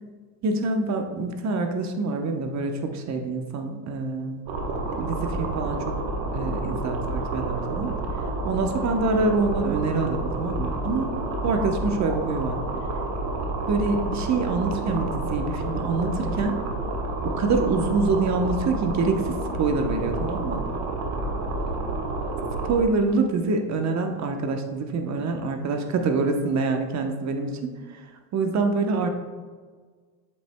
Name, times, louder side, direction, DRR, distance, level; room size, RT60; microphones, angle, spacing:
voice 1, 0.4-4.4 5.0-6.0 6.3-8.0 8.4-12.6 13.7-16.6 17.2-20.7 22.6-28.0 28.3-29.1, right 3 dB, 35° right, 5 dB, 0.9 m, -26 dB
sound 1, 4.5-22.8, right 2 dB, 55° right, 1.4 m, -29 dB
8.7 x 7.3 x 2.2 m, 1.5 s
supercardioid pair, 105°, 49 cm